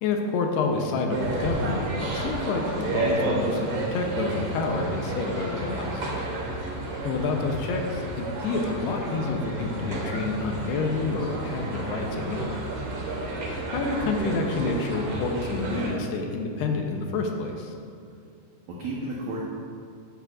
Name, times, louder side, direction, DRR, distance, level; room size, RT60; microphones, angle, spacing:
voice 1, 0.0-6.1 7.0-12.6 13.7-17.7, left 3 dB, 80° left, 2 dB, 2.7 m, -28 dB
sound 1, 1.1-15.9, right 2 dB, 65° right, 1.5 m, -31 dB
voice 2, 18.7-19.4, right 2 dB, 90° right, -4 dB, 1.6 m, -35 dB
14.0 x 9.1 x 2.5 m, 2.4 s
omnidirectional pair, 4.9 m